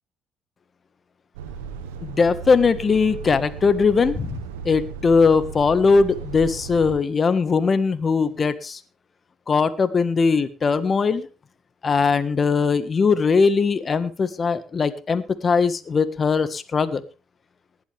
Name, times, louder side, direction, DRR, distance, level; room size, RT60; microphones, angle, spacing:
Truck, 1.3-7.0, right 6 dB, 85° right, 1.4 m, -36 dB
voice 1, 2.0-4.3 4.6-8.8 9.5-11.3 11.8-17.0, left 5 dB, 40° left, 13 dB, 1.6 m, -20 dB
19.0 x 11.5 x 3.5 m, 0.31 s
hypercardioid pair, 55°, 0 cm